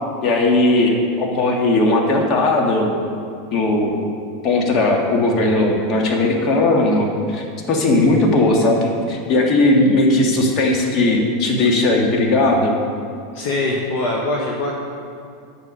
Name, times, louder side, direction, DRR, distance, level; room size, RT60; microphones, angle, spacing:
voice 1, 0.2-2.9 3.5-4.0 4.4-12.8, left 2 dB, 45° left, 1 dB, 1.7 m, -17 dB
voice 2, 13.3-14.7, left 2 dB, 65° left, -1 dB, 1.2 m, -22 dB
9.0 x 6.7 x 5.4 m, 2.4 s
hypercardioid pair, 110°, 0 cm